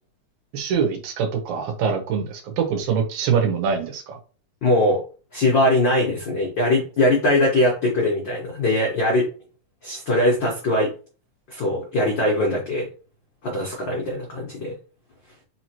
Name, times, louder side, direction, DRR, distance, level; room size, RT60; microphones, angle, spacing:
voice 1, 0.5-4.2, right 6 dB, 70° right, 5 dB, 2.1 m, -24 dB
voice 2, 4.6-5.0 5.3-9.3 9.8-10.9 11.5-12.9 13.4-14.7, left 1 dB, 85° left, -3 dB, 1.0 m, -21 dB
4.9 x 2.9 x 2.9 m, 0.37 s
omnidirectional pair, 3.8 m